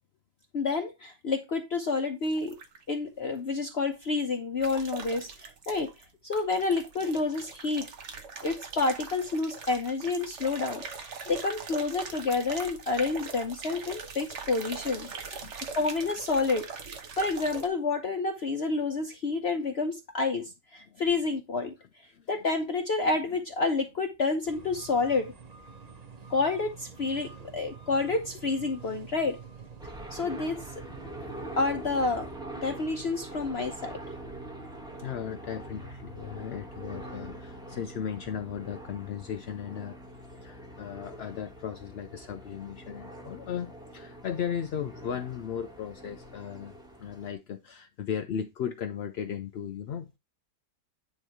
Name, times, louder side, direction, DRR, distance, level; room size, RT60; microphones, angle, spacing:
voice 1, 0.5-2.6 2.9-5.9 6.2-7.9 8.4-15.4 15.8-16.7 17.2-21.7 22.3-25.3 26.3-29.4 30.1-30.6 31.6-32.3 32.6-34.0, left 3 dB, 50° left, 0.9 m, -29 dB
sound 1, 2.2-2.8 4.6-6.0 6.3-17.7, right 5 dB, 55° right, 1.2 m, -41 dB
sound 2, 24.5-32.4, right 5 dB, 35° right, 0.7 m, -47 dB
sound 3, 29.8-47.3, right 1 dB, 5° right, 1.1 m, -44 dB
voice 2, 34.3-50.2, left 8 dB, 65° left, 0.6 m, -37 dB
9.4 x 3.3 x 4.5 m
omnidirectional pair, 1.7 m